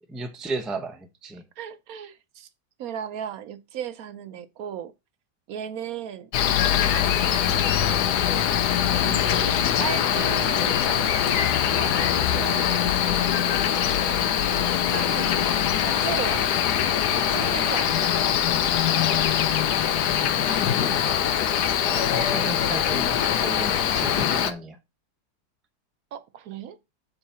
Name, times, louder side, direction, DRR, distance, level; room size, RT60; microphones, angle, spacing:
voice 1, 0.1-1.4 20.5-21.1 21.8-24.8, right 2 dB, ahead, 0.5 m, -34 dB
voice 2, 1.6-2.5 2.8-4.9 5.5-6.3 6.6-7.6 9.0-11.2 11.8-13.3 14.1-15.4 15.8-16.4 17.1-18.1 26.1-26.8, right 9 dB, 70° right, 1.0 m, -36 dB
Cricket, 6.3-24.5, left 9 dB, 80° left, 1.3 m, -23 dB
7.2 x 3.9 x 5.5 m
omnidirectional pair, 1.7 m